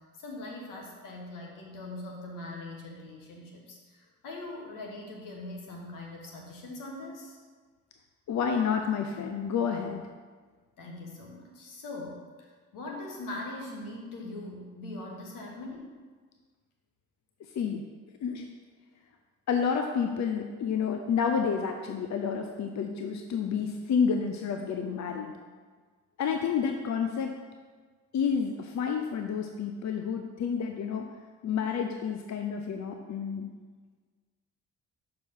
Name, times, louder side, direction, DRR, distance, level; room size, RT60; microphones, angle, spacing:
voice 1, 0.0-7.4 10.8-12.2 12.7-16.0, left 2 dB, 85° left, -1 dB, 1.4 m, -41 dB
voice 2, 8.3-10.0 17.5-17.8 18.2-18.5 19.5-25.3 26.2-27.4 28.1-31.1 31.4-33.5, left 6 dB, 60° left, 4 dB, 0.6 m, -29 dB
6.2 x 4.7 x 5.5 m, 1.5 s
supercardioid pair, 60°, 32 cm